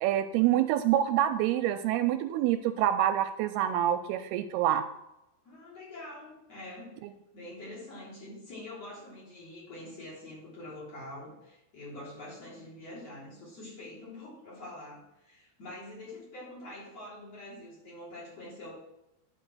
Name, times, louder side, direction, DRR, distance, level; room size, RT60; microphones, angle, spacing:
voice 1, 0.0-4.9, right 11 dB, 85° right, 10 dB, 2.4 m, -26 dB
voice 2, 5.4-7.0 7.3-18.7, left 1 dB, 40° left, -6 dB, 4.2 m, -45 dB
10.5 x 5.3 x 6.0 m, 0.90 s
omnidirectional pair, 4.7 m